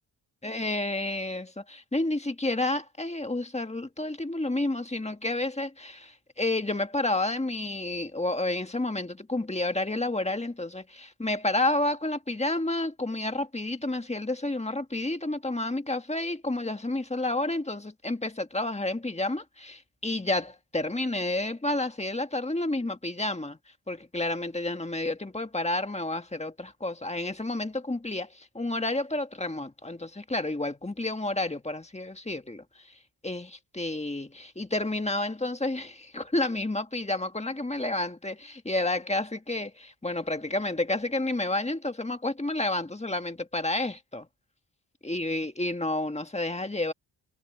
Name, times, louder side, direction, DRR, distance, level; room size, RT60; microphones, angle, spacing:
voice 1, 0.4-23.6 23.9-32.6 33.2-44.3 45.0-46.9, left 2 dB, 15° left, 1.6 m, -30 dB
wide cardioid pair, 95°, 42 cm